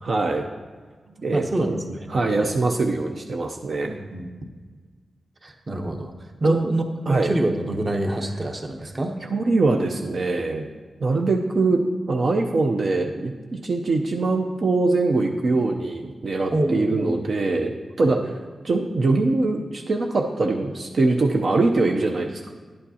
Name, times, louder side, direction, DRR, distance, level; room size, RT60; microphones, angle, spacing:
voice 1, 0.0-0.5 1.2-1.8 2.1-3.9 6.4-6.6 7.1-7.3 9.2-10.7 11.0-11.8 12.1-18.2 18.6-22.5, right 3 dB, 60° right, 2 dB, 0.6 m, -22 dB
voice 2, 1.1-2.1 2.4-2.6 3.8-4.3 5.4-6.1 6.4-9.2 16.5-17.2 18.0-18.1, right 1 dB, 30° right, 4 dB, 0.9 m, -27 dB
10.5 x 8.7 x 2.8 m, 1.4 s
wide cardioid pair, 110°, 0 cm